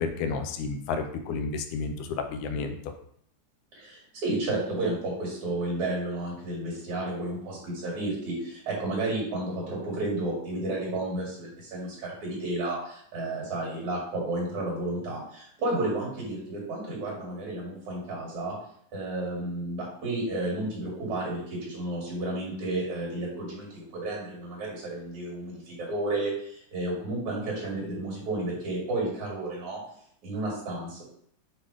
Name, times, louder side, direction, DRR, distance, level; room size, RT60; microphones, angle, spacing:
voice 1, 0.0-2.8, left 4 dB, 75° left, 6 dB, 2.0 m, -31 dB
voice 2, 3.7-18.6 18.9-29.8 30.2-31.0, right 2 dB, 60° right, -3 dB, 3.7 m, -32 dB
7.7 x 2.8 x 4.8 m, 0.66 s
omnidirectional pair, 3.8 m